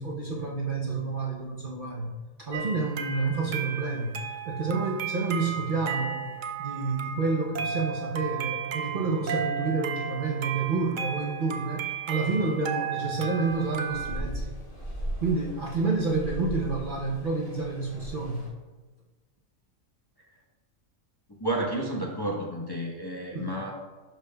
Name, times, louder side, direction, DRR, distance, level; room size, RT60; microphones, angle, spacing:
voice 1, 0.0-2.1 2.4-4.2 4.5-14.4 15.2-18.4 23.3-23.6, right 4 dB, 45° right, -2 dB, 0.8 m, -29 dB
sound 1, 2.5-14.2, right 7 dB, 60° right, 0.5 m, -34 dB
sound 2, 13.4-18.5, right 1 dB, 90° left, 3.1 m, -38 dB
voice 2, 21.4-23.7, right 1 dB, 20° left, -3 dB, 0.8 m, -31 dB
12.0 x 5.2 x 2.3 m, 1.3 s
omnidirectional pair, 1.4 m